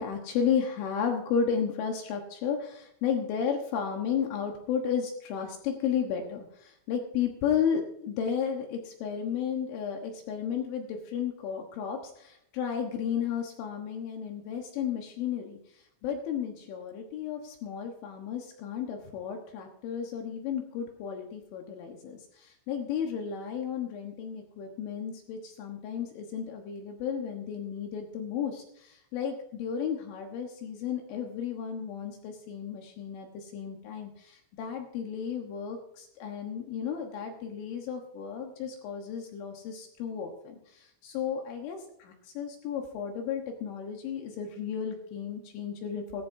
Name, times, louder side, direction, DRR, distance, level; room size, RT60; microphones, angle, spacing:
voice 1, 0.0-15.6 16.0-46.2, left 7 dB, 75° left, 2 dB, 3.6 m, -33 dB
20.0 x 14.0 x 2.7 m, 0.75 s
omnidirectional pair, 5.8 m